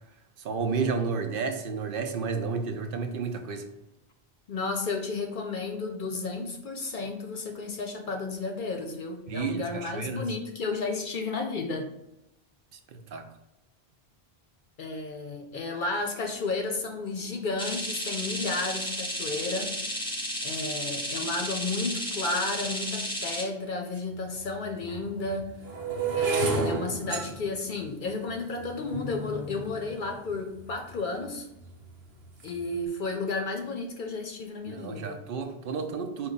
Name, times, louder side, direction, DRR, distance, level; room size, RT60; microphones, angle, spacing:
voice 1, 0.4-3.7 9.3-10.2 12.9-13.2 34.7-36.3, right 5 dB, 65° right, 6 dB, 0.7 m, -31 dB
voice 2, 4.5-11.9 14.8-19.8 20.4-25.5 26.2-31.5 32.4-35.2, left 3 dB, 60° left, 3 dB, 0.6 m, -32 dB
sound 1, 17.6-23.4, equal, 5° left, 0.6 m, -33 dB
sound 2, 24.0-24.1 24.8-31.0 31.6-32.6, right 3 dB, 80° right, 1.0 m, -32 dB
4.6 x 2.3 x 3.9 m, 0.88 s
omnidirectional pair, 1.1 m